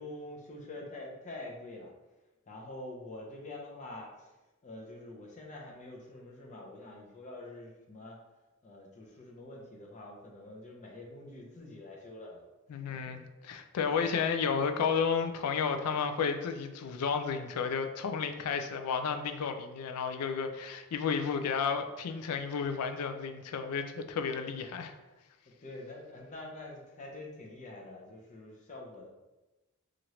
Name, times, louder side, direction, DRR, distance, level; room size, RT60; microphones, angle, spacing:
voice 1, 0.0-1.9 2.5-4.3 4.6-8.2 8.6-12.5 12.9-13.2 25.6-29.1, left 2 dB, 35° left, -1 dB, 0.6 m, -46 dB
voice 2, 12.7-24.9, left 6 dB, 85° left, 7 dB, 0.4 m, -32 dB
2.9 x 2.5 x 3.0 m, 1.0 s
head